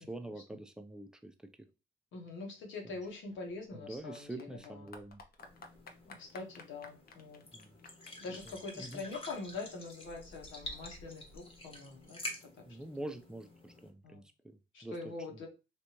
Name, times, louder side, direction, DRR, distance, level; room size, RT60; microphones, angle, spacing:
voice 1, 0.0-1.3 3.7-5.2 7.5-7.8 8.8-9.0 12.6-14.9 15.3-15.5, right 1 dB, 5° right, 7 dB, 0.5 m, -45 dB
voice 2, 2.1-4.9 6.1-7.4 8.2-12.2 14.0-14.2 14.7-15.5, left 3 dB, 75° left, 1 dB, 1.2 m, -44 dB
Clapping / Applause, 3.1-12.0, left 3 dB, 50° left, 0.7 m, -56 dB
sound 1, 5.4-13.9, left 1 dB, 25° left, 1.2 m, -49 dB
3.4 x 2.6 x 3.0 m, 0.29 s
cardioid pair, 90°, 20 cm